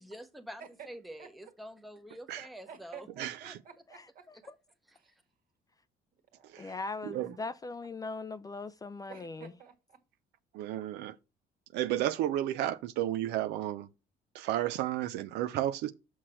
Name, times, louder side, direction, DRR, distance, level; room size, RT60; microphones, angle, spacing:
voice 1, 0.1-3.1, equal, ahead, 0.7 m, -46 dB
voice 2, 1.2-1.5 2.7-4.3 4.9-5.1 6.3-6.7 9.1-10.0, right 7 dB, 55° right, 1.7 m, -51 dB
voice 3, 3.2-3.6 6.4-7.4 10.5-11.2 11.7-13.9 14.3-15.9, right 13 dB, 85° right, 0.5 m, -33 dB
voice 4, 6.6-9.5, left 3 dB, 20° left, 0.4 m, -39 dB
6.3 x 5.9 x 4.3 m
cardioid pair, 110°, 17 cm